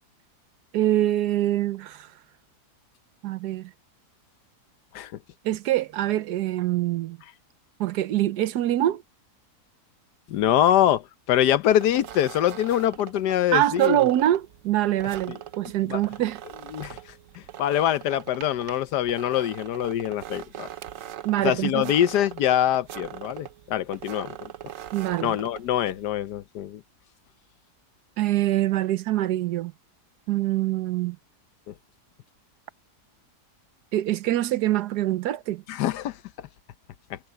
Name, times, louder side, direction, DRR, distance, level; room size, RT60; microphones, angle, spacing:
voice 1, 0.7-2.1 3.2-3.7 5.4-7.2 7.8-9.0 13.5-16.4 21.2-21.9 24.9-25.4 28.2-29.7 30.3-31.2 33.9-35.6, right 14 dB, 80° right, 1.3 m, -24 dB
voice 2, 10.3-14.0 15.3-15.4 15.9-16.0 16.7-17.0 17.6-20.7 21.4-24.5 25.2-26.8 35.7-36.2 37.1-37.2, left 11 dB, 80° left, 1.3 m, -24 dB
sound 1, 11.7-26.1, right 11 dB, 60° right, 1.0 m, -42 dB
omnidirectional pair, 1.8 m